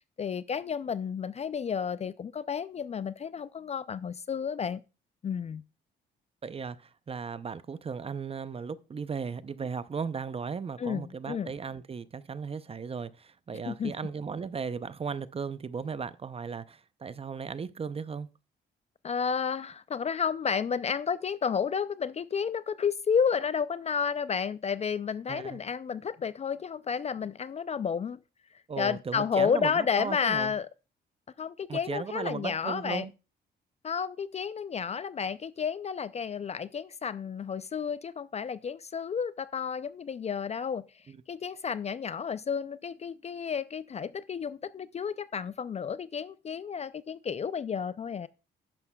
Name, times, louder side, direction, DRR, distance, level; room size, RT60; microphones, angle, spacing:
voice 1, 0.2-4.8 5.2-5.6 10.8-11.5 13.7-13.9 19.0-28.2 28.8-30.7 31.4-33.1 33.8-40.8 41.3-48.3, left 6 dB, 35° left, 0.4 m, -31 dB
voice 2, 6.4-18.3 25.3-25.6 28.7-30.5 31.7-33.1 41.1-41.2, right 5 dB, 30° right, 0.5 m, -36 dB
11.0 x 9.6 x 2.3 m
cardioid pair, 90°, 20 cm